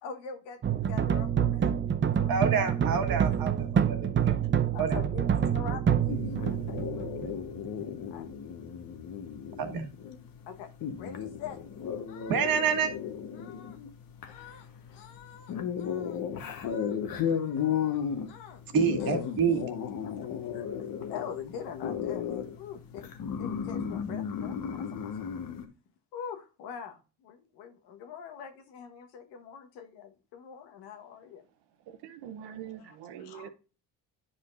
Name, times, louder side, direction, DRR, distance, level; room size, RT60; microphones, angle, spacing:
voice 1, 0.0-1.8 2.1-3.1 4.7-7.4 8.1-8.3 10.5-10.7 11.0-11.6 12.1-12.7 13.3-13.8 14.3-14.7 14.9-15.5 15.8-16.2 16.6-17.0 17.2-18.0 18.3-18.7 19.0-19.2 19.5-20.1 20.5-20.6 21.0-25.3 26.1-31.4 32.8-33.5, left 7 dB, 85° left, 1.3 m, -44 dB
sound 1, 0.6-7.9, right 8 dB, 30° right, 0.6 m, -27 dB
voice 2, 2.3-4.2 4.8-5.0 9.6-9.9 12.3-12.9 18.7-19.7, right 6 dB, 60° right, 1.5 m, -28 dB
sound 2, 6.1-25.7, left 8 dB, 60° left, 1.2 m, -35 dB
voice 3, 31.9-33.5, right 9 dB, 80° right, 1.0 m, -43 dB
9.9 x 5.1 x 2.4 m
supercardioid pair, 80°, 40 cm